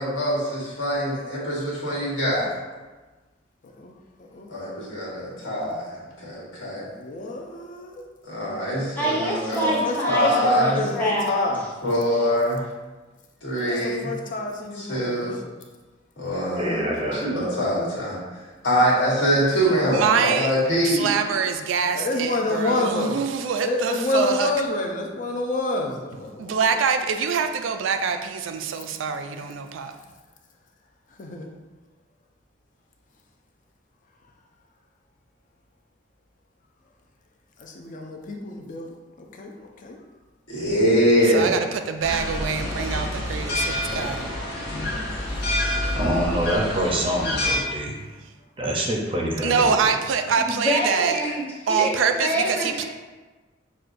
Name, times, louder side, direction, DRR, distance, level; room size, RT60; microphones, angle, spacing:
voice 1, 0.0-2.5 4.5-6.8 8.3-9.7 10.1-10.8 11.8-12.6 13.4-14.1 14.7-15.4 16.2-16.8 17.1-18.2 18.6-21.2 40.5-41.6, equal, 80° left, 1.5 m, -23 dB
voice 2, 3.6-3.9 4.3-4.5 7.0-8.0 9.8-11.6 13.7-15.3 21.9-23.2 23.6-26.8 31.2-31.5 37.6-38.9 39.2-39.5 39.8-40.0, left 2 dB, 40° left, 0.5 m, -28 dB
voice 3, 9.0-11.7 50.4-52.9, equal, 10° left, 0.9 m, -26 dB
voice 4, 16.3-17.4 45.6-48.0 48.6-49.9, right 1 dB, 30° right, 0.5 m, -26 dB
voice 5, 19.9-20.5 21.0-24.5 26.4-29.9 41.3-41.6 41.9-44.2 49.4-51.1 51.7-52.3, right 6 dB, 85° right, 0.3 m, -24 dB
sound 1, 42.0-47.6, left 1 dB, 60° left, 1.1 m, -27 dB
6.2 x 2.2 x 2.5 m
head